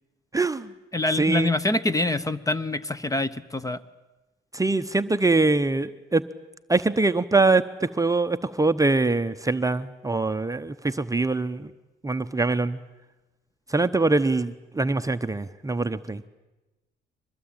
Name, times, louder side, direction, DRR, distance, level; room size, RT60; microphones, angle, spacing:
voice 1, 0.3-0.7 1.2-1.5 4.5-6.2 6.7-11.7 12.0-12.8 13.7-16.2, right 3 dB, 15° right, 9 dB, 0.8 m, -23 dB
voice 2, 0.9-3.8, left 2 dB, 15° left, 14 dB, 1.0 m, -25 dB
24.0 x 20.5 x 8.9 m, 1.1 s
cardioid pair, 90°, 20 cm